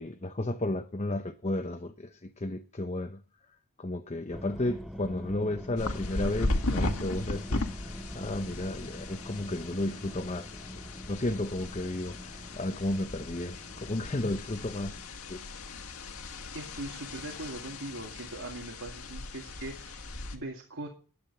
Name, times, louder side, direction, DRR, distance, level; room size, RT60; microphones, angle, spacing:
voice 1, 0.0-3.2 3.8-15.0 15.3-15.5, left 1 dB, 30° left, 0.8 m, -33 dB
sound 1, 4.3-15.1, equal, ahead, 0.7 m, -45 dB
sound 2, 5.8-20.4, left 2 dB, 75° left, 1.7 m, -37 dB
voice 2, 16.5-20.0 20.3-20.9, right 2 dB, 65° right, 2.3 m, -40 dB
12.0 x 9.7 x 6.8 m
head